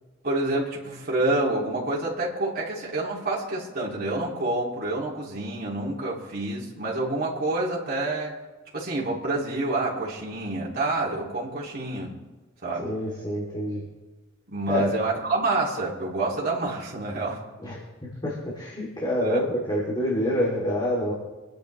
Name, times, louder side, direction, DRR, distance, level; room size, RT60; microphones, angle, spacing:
voice 1, 0.2-8.3 8.7-12.1 12.6-12.9 14.5-17.4 19.2-19.4, right 2 dB, 50° right, -6 dB, 3.2 m, -28 dB
voice 2, 12.8-13.9 14.7-14.9 17.6-21.1, equal, 25° left, -6 dB, 3.4 m, -27 dB
25.5 x 10.5 x 3.4 m, 1.2 s
head